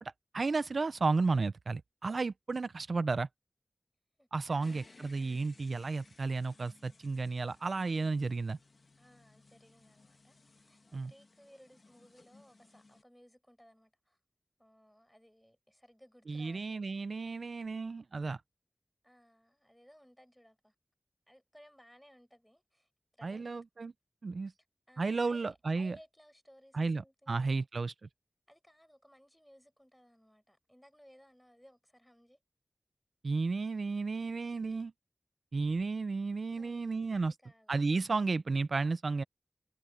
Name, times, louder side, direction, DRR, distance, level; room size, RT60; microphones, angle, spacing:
voice 1, 0.0-3.3 4.3-8.6 10.9-11.1 16.3-18.4 23.2-23.9 24.2-24.5 25.0-26.0 26.7-27.0 27.3-27.9 33.2-34.9 35.5-37.3 37.7-39.2, right 3 dB, 80° right, 0.4 m, -33 dB
voice 2, 4.2-5.0 9.0-14.2 14.6-17.0 19.0-20.7 21.3-23.7 24.9-27.6 28.5-32.4 36.5-37.8, equal, 5° left, 6.7 m, -61 dB
sound 1, 4.6-13.0, left 3 dB, 70° left, 1.8 m, -61 dB
wide cardioid pair, 55°, 0 cm